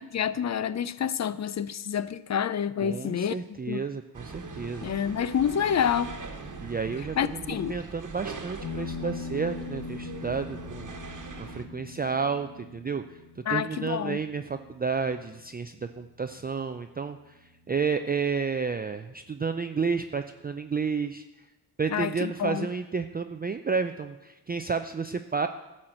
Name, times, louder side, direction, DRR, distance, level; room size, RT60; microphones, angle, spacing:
voice 1, 0.1-3.3 3.7-3.8 4.8-6.1 7.2-7.8 13.5-14.2 21.9-22.7, left 8 dB, 40° left, 0.5 m, -28 dB
voice 2, 2.8-4.9 6.6-10.9 11.4-21.2 21.8-25.5, right 5 dB, 20° right, 0.5 m, -31 dB
sound 1, 4.1-11.7, right 4 dB, 45° right, 1.3 m, -41 dB
sound 2, 8.6-17.6, left 5 dB, 75° left, 2.3 m, -42 dB
11.5 x 4.4 x 7.7 m
cardioid pair, 55°, 43 cm